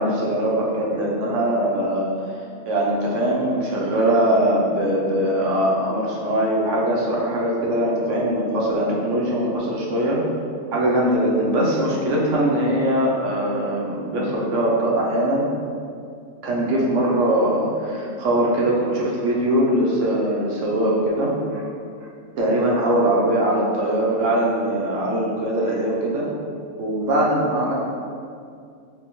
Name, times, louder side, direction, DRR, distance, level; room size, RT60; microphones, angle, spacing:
voice 1, 0.0-2.1 2.7-10.2 10.7-15.5 16.4-21.6 22.4-26.3 26.8-27.7, right 1 dB, 70° right, -4 dB, 1.0 m, -21 dB
3.5 x 2.9 x 2.9 m, 2.3 s
omnidirectional pair, 1.3 m